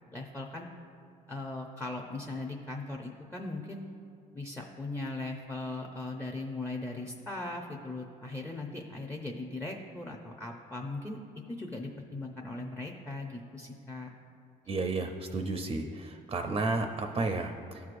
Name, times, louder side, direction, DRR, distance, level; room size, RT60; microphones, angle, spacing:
voice 1, 0.1-0.7 1.3-3.8 4.3-11.2 11.5-14.1, left 2 dB, 10° left, 0 dB, 0.6 m, -39 dB
voice 2, 14.7-17.8, right 3 dB, 30° right, 5 dB, 0.5 m, -32 dB
13.0 x 4.7 x 2.5 m, 2.4 s
supercardioid pair, 85°, 17 cm